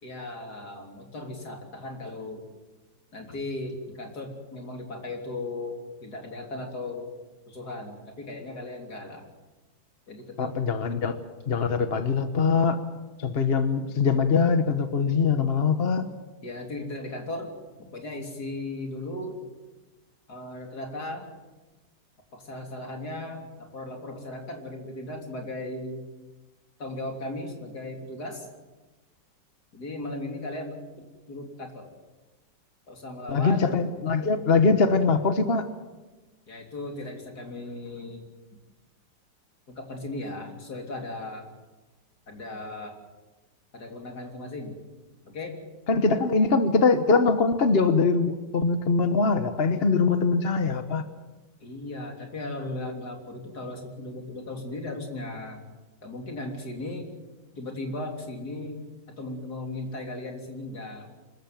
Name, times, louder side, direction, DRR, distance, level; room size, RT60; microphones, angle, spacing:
voice 1, 0.0-2.5 3.1-7.1 7.5-9.2 10.1-10.6 16.4-17.5 17.8-19.4 20.3-21.3 22.3-26.0 26.8-28.5 29.7-30.8 31.3-31.9 32.9-33.8 36.5-38.2 39.8-41.4 42.3-42.9 43.7-44.8 45.2-45.6 51.6-55.6 56.0-57.1 57.6-58.8 59.2-61.1, left 2 dB, 60° left, 2 dB, 3.9 m, -36 dB
voice 2, 10.4-11.2 11.5-12.8 13.2-16.0 33.3-35.7 45.9-51.0, left 4 dB, 40° left, 9 dB, 1.2 m, -22 dB
25.5 x 14.5 x 9.3 m, 1.2 s
omnidirectional pair, 1.9 m